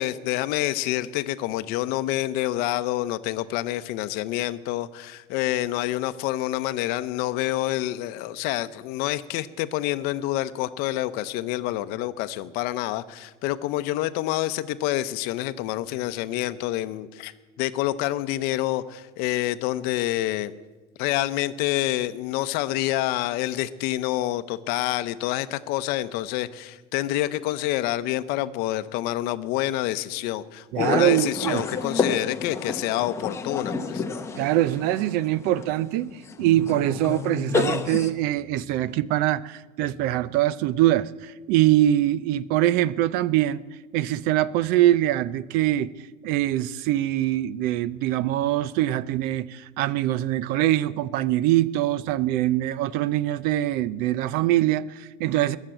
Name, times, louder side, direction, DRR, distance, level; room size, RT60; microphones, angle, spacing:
voice 1, 0.0-17.3 17.6-20.5 21.0-34.0, left 15 dB, 60° left, 0.7 m, -27 dB
voice 2, 30.7-31.6 34.4-43.6 43.9-45.9 46.2-55.6, right 14 dB, 55° right, 0.5 m, -23 dB
sound 1, 30.8-38.1, left 4 dB, 15° left, 0.8 m, -30 dB
21.0 x 7.4 x 8.9 m
cardioid pair, 170°, 18 cm